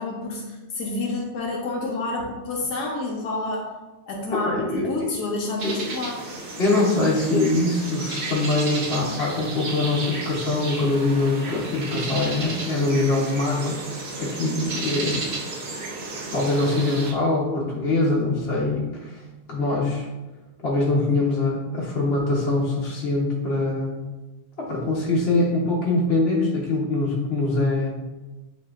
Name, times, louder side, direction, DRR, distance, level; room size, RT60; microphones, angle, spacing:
voice 1, 0.0-3.7 4.1-6.2, left 2 dB, 80° left, -1 dB, 1.2 m, -29 dB
voice 2, 4.4-5.1 5.6-5.8 6.6-13.8 14.2-15.2 16.3-19.2 19.5-20.1 20.6-24.0 24.6-28.0, left 2 dB, 50° left, -5 dB, 1.0 m, -23 dB
sound 1, 5.6-17.1, right 3 dB, 55° right, 0.6 m, -33 dB
8.0 x 2.7 x 2.4 m, 1.1 s
omnidirectional pair, 1.7 m